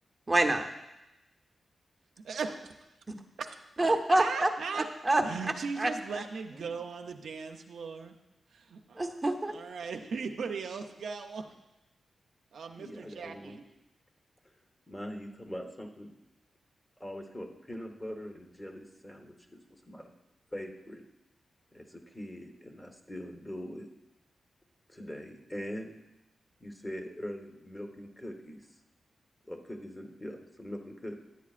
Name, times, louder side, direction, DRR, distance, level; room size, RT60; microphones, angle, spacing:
voice 1, 0.3-0.7 3.8-5.2 5.8-5.9 9.0-9.6, right 2 dB, 25° right, 5 dB, 0.8 m, -26 dB
voice 2, 3.4-3.9 4.2-4.9 5.2-8.2 8.5-9.0 9.5-11.4 12.5-13.6, right 5 dB, 85° right, 4 dB, 0.6 m, -38 dB
voice 3, 12.7-13.6 14.9-16.1 17.0-20.1 20.5-21.0 21.7-23.9 24.9-25.9 26.6-28.6 29.4-31.2, equal, 15° left, 3 dB, 1.1 m, -42 dB
11.0 x 8.3 x 2.5 m, 0.95 s
cardioid pair, 80°, 0 cm